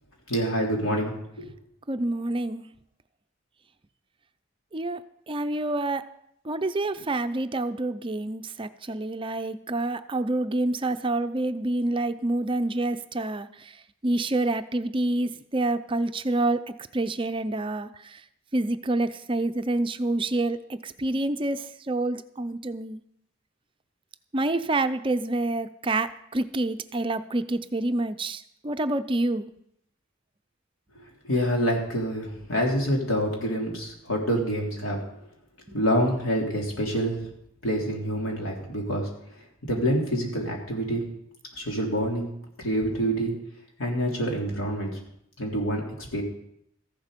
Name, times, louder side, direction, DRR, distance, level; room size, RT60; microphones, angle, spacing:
voice 1, 0.3-1.5 31.2-35.0 35.7-37.3 37.6-39.1 39.6-41.0 41.5-42.3 42.6-43.4 43.8-45.0 45.4-46.2, equal, 80° left, -1 dB, 3.7 m, -27 dB
voice 2, 1.9-2.6 4.7-5.0 5.3-6.0 6.5-13.5 14.0-17.9 18.5-23.0 24.3-29.5, right 2 dB, 25° right, 10 dB, 0.5 m, -27 dB
14.5 x 11.5 x 5.2 m, 0.74 s
head